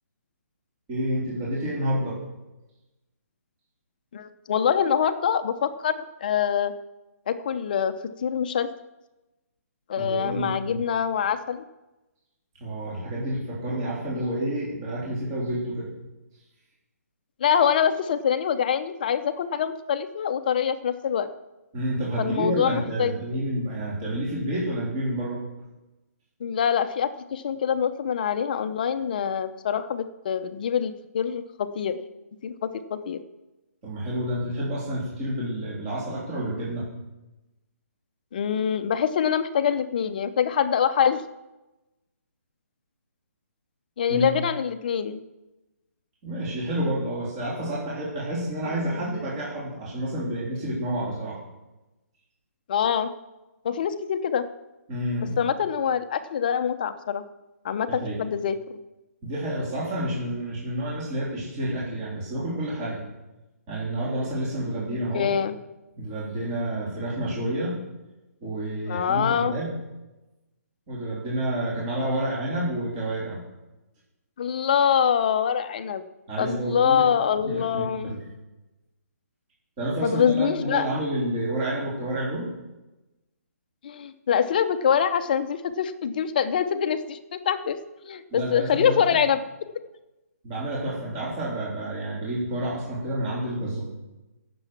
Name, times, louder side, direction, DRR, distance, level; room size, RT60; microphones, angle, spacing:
voice 1, 0.9-2.2 10.0-10.8 12.6-15.9 21.7-25.4 33.8-36.9 44.1-44.3 46.2-51.4 54.9-55.4 57.9-58.2 59.2-63.0 63.7-65.3 66.0-67.8 68.4-69.7 70.9-73.4 76.3-77.0 77.4-78.2 79.8-82.5 88.3-89.1 90.4-93.8, right 1 dB, 20° right, -6 dB, 3.5 m, -29 dB
voice 2, 4.1-6.7 7.3-7.9 8.2-8.7 9.9-11.6 17.4-21.3 22.2-23.1 26.4-32.0 32.4-33.2 38.3-41.2 44.0-45.2 48.6-49.0 52.7-53.1 53.6-54.4 55.4-57.2 57.6-58.8 65.1-65.5 68.9-69.6 74.4-76.0 76.4-78.2 80.0-80.9 83.8-87.8 88.0-89.4, left 8 dB, 30° left, 10 dB, 0.8 m, -25 dB
17.5 x 7.0 x 5.9 m, 1.0 s
hypercardioid pair, 170°, 9 cm